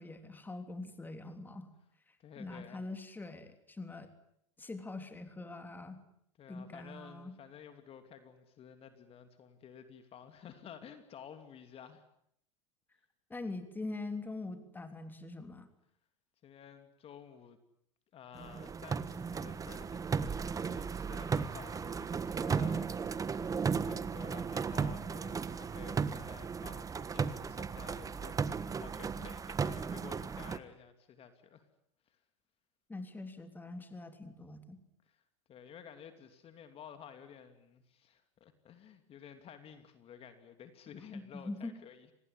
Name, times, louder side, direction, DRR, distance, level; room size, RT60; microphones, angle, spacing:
voice 1, 0.0-1.7 2.4-4.1 4.6-6.0 6.5-7.4 13.3-15.7 32.9-34.8 41.1-41.7, left 2 dB, 10° left, 8 dB, 3.3 m, -43 dB
voice 2, 2.2-2.8 6.4-12.0 16.4-17.6 18.1-23.3 23.8-28.4 28.7-31.7 32.1-32.2 35.0-35.2 35.5-42.1, left 8 dB, 35° left, 9 dB, 2.9 m, -53 dB
sound 1, 18.3-30.6, right 5 dB, 20° right, 1.5 m, -35 dB
27.0 x 19.5 x 9.8 m, 0.73 s
hypercardioid pair, 100°, 16 cm